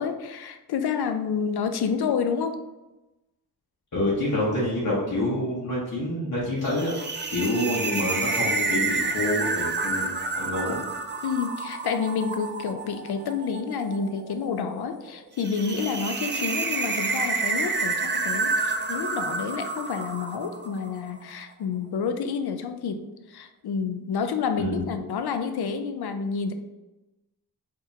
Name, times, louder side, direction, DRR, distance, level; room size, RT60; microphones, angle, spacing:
voice 1, 0.0-2.6 11.2-26.5, left 6 dB, 75° left, 8 dB, 0.5 m, -29 dB
voice 2, 3.9-6.9 7.3-10.8 24.6-24.8, left 1 dB, 50° left, -8 dB, 1.0 m, -27 dB
sound 1, 6.7-21.0, right 3 dB, 30° right, 0.4 m, -29 dB
4.9 x 2.7 x 2.7 m, 1.0 s
wide cardioid pair, 95°, 39 cm